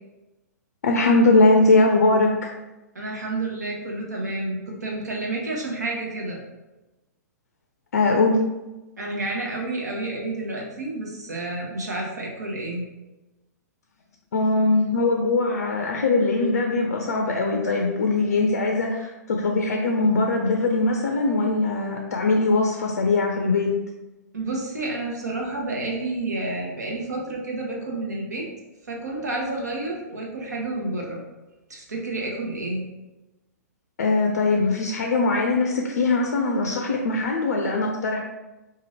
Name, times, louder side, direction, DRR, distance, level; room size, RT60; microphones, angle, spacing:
voice 1, 0.8-2.5 7.9-8.5 14.3-23.8 34.0-38.2, left 3 dB, 65° left, 2 dB, 0.4 m, -21 dB
voice 2, 2.9-6.4 9.0-12.8 24.3-28.5 28.9-31.2 31.7-32.8, right 2 dB, 70° right, -1 dB, 1.0 m, -30 dB
2.9 x 2.5 x 4.0 m, 1.1 s
figure-of-eight pair, 110°, 9 cm